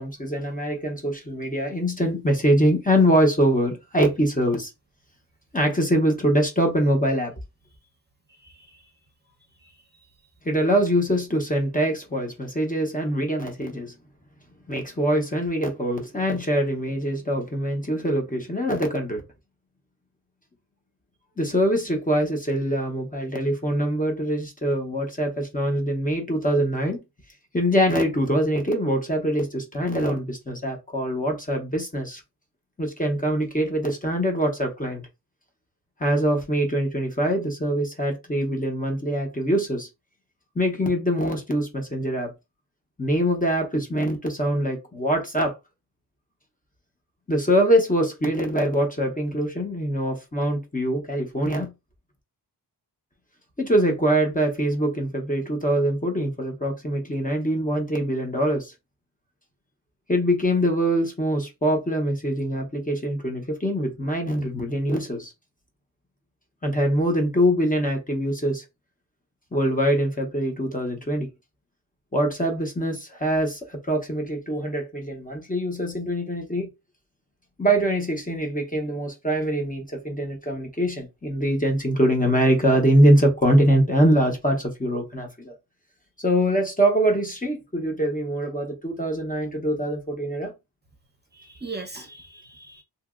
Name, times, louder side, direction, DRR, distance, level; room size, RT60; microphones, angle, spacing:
voice 1, 0.0-4.7 5.5-7.3 10.4-13.9 14.7-19.2 21.4-27.0 27.5-32.2 32.8-35.0 36.0-39.9 40.6-42.3 43.0-45.5 47.3-51.7 53.6-58.7 60.1-65.3 66.6-68.6 69.5-71.3 72.1-76.7 77.6-85.5 86.2-90.5, equal, 20° left, 0.8 m, -23 dB
voice 2, 8.3-8.9 9.6-10.1 91.3-92.8, right 3 dB, 25° right, 0.7 m, -41 dB
2.8 x 2.8 x 2.4 m
wide cardioid pair, 115°, 41 cm